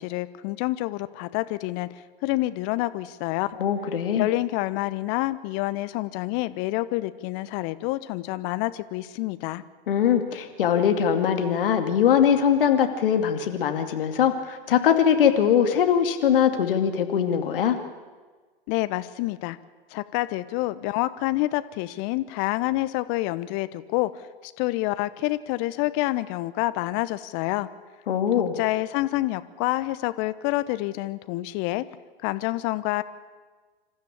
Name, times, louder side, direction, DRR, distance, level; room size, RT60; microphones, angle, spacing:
voice 1, 0.0-3.5 4.1-9.6 18.7-19.6 19.9-27.7 28.6-31.8 32.2-33.0, left 18 dB, 40° left, 15 dB, 1.0 m, -28 dB
voice 2, 3.6-4.3 9.9-17.8 28.1-28.5, left 8 dB, 65° left, 6 dB, 2.5 m, -21 dB
26.5 x 14.0 x 8.7 m, 1.4 s
figure-of-eight pair, 100°, 29 cm